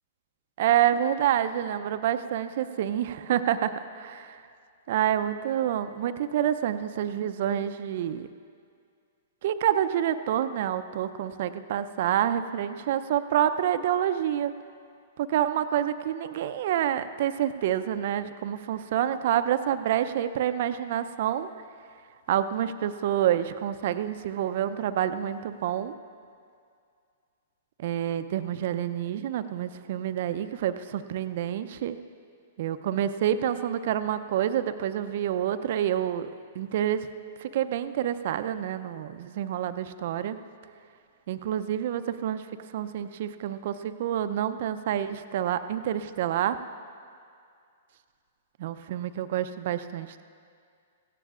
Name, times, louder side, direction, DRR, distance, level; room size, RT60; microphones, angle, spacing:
voice 1, 0.6-4.4 4.9-8.3 9.4-14.5 15.2-21.5 22.3-26.0 27.8-32.0 32.6-36.3 36.6-37.1 37.4-40.4 41.3-46.6 48.6-50.2, right 10 dB, 55° right, 11 dB, 0.6 m, -28 dB
17.0 x 15.5 x 2.5 m, 2.3 s
hypercardioid pair, 115°, 0 cm